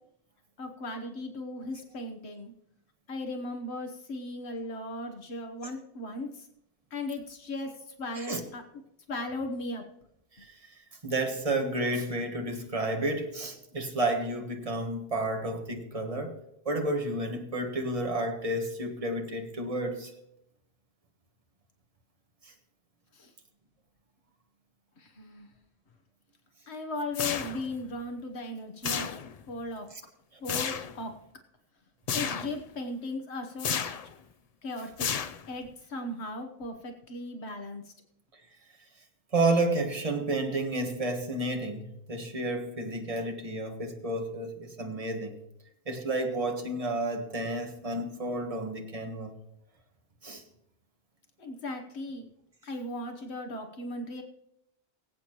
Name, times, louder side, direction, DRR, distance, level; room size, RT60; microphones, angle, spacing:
voice 1, 0.6-2.5 3.1-6.5 6.9-7.7 8.0-8.6 9.1-9.8 23.1-23.3 25.0-25.5 26.7-29.1 29.5-29.9 30.4-31.1 32.1-33.7 34.6-35.1 35.5-37.9 51.4-52.3 52.6-54.2, left 2 dB, 80° left, 4 dB, 1.4 m, -37 dB
voice 2, 11.0-16.4 16.6-20.1 39.3-45.3 45.9-49.3 50.2-50.4, right 2 dB, 35° right, 3 dB, 1.5 m, -31 dB
sound 1, 27.1-27.8 28.8-29.5 30.4-31.0 32.1-32.6 33.6-34.1 35.0-35.7, left 7 dB, 50° left, 0.5 m, -32 dB
23.5 x 8.3 x 3.0 m, 0.78 s
omnidirectional pair, 1.1 m